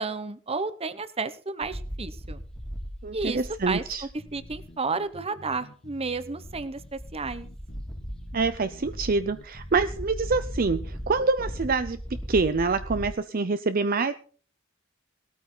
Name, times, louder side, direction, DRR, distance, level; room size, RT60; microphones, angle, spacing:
voice 1, 0.0-2.4 3.1-7.5, right 4 dB, 30° right, 13 dB, 1.0 m, -32 dB
sound 1, 1.6-4.7 5.1-5.2 6.1-6.2 6.4-13.1, equal, 5° left, 2.2 m, -38 dB
voice 2, 3.0-4.0 8.3-14.1, right 4 dB, 45° right, 11 dB, 0.6 m, -26 dB
sound 2, 4.2-11.6, left 1 dB, 45° left, 1.6 m, -49 dB
18.5 x 13.5 x 3.9 m, 0.43 s
head